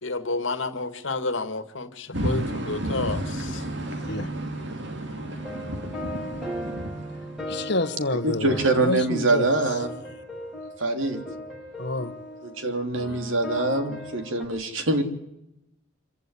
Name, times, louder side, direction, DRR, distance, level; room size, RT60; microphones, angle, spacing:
voice 1, 0.0-3.6, left 3 dB, 75° left, 2.0 m, -30 dB
sound 1, 2.1-7.8, right 1 dB, 60° right, 2.9 m, -32 dB
voice 2, 3.9-4.3 7.5-9.5 11.8-12.1, left 2 dB, 60° left, 1.4 m, -28 dB
sound 2, 5.2-14.4, equal, ahead, 6.8 m, -38 dB
voice 3, 8.2-9.9 10.8-11.2 12.4-15.0, right 2 dB, 85° right, 3.2 m, -24 dB
25.5 x 15.5 x 9.9 m
head